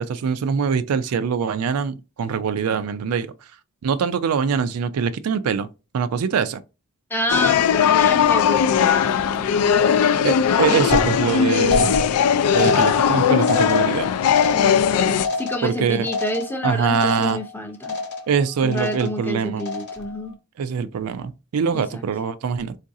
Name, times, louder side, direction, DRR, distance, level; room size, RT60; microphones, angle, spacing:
voice 1, 0.0-3.3 3.8-5.7 5.9-6.6 10.2-12.0 12.5-14.1 15.6-16.1 16.6-17.4 18.3-19.6 20.6-22.8, right 6 dB, 75° right, 0.4 m, -23 dB
voice 2, 7.1-10.2 14.5-17.9 18.6-20.4 21.7-22.0, left 1 dB, 10° left, 0.5 m, -28 dB
sound 1, 7.3-15.3, left 8 dB, 80° left, 0.3 m, -19 dB
sound 2, 10.9-16.7 16.9-17.5 17.8-18.4 18.7-19.2 19.6-20.1, left 3 dB, 50° left, 0.8 m, -27 dB
3.9 x 2.5 x 2.6 m
head